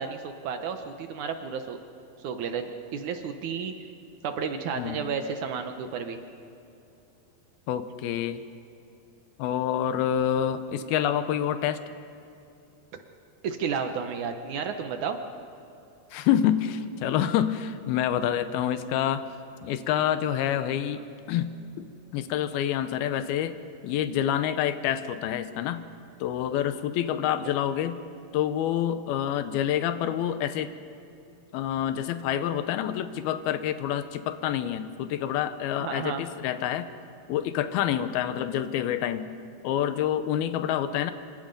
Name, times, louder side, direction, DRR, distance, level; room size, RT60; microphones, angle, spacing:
voice 1, 0.0-1.8 2.2-3.7 4.2-6.2 12.9-13.0 13.4-15.2 27.2-27.5 35.8-36.2, right 6 dB, 70° right, 7 dB, 2.0 m, -32 dB
voice 2, 7.7-8.4 9.4-11.8 16.1-19.2 19.6-21.0 21.3-21.9 22.1-23.6 23.8-25.9 26.2-28.0 28.3-30.7 31.5-36.9 37.3-39.3 39.6-41.1, left 10 dB, 85° left, 11 dB, 2.7 m, -27 dB
26.5 x 24.5 x 5.2 m, 2.7 s
omnidirectional pair, 4.3 m